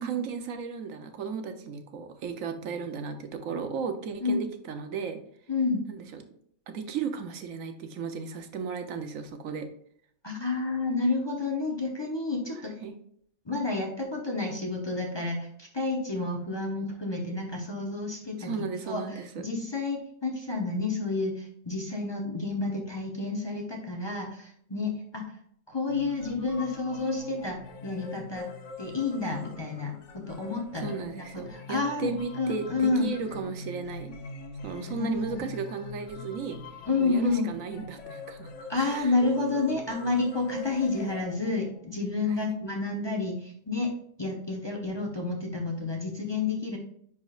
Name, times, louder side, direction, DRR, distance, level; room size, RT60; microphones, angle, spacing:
voice 1, 0.0-5.2 5.9-6.2 6.7-9.7 12.8-13.0 18.4-19.5 30.7-34.2 34.6-36.6 37.0-39.2 42.2-42.5, right 6 dB, 75° right, 7 dB, 1.2 m, -35 dB
voice 2, 5.5-5.8 10.2-12.7 13.5-18.5 18.9-25.2 25.7-27.6 27.8-28.5 28.8-30.9 31.3-33.1 34.9-35.4 36.9-37.5 38.7-43.9 44.2-46.8, left 3 dB, 20° left, 0 dB, 0.8 m, -30 dB
sound 1, 25.9-41.9, left 3 dB, 65° left, 1.0 m, -44 dB
10.5 x 4.2 x 2.4 m, 0.64 s
omnidirectional pair, 1.4 m